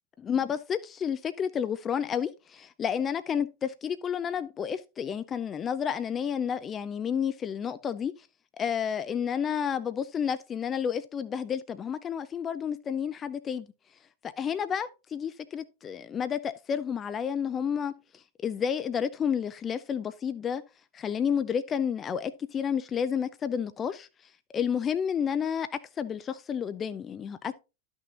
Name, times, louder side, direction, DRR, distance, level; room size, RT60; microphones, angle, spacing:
voice 1, 0.2-8.3 8.6-13.7 14.2-20.6 20.9-27.5, left 7 dB, 25° left, 0.4 m, -31 dB
12.0 x 6.1 x 2.5 m
figure-of-eight pair, 90°, 0 cm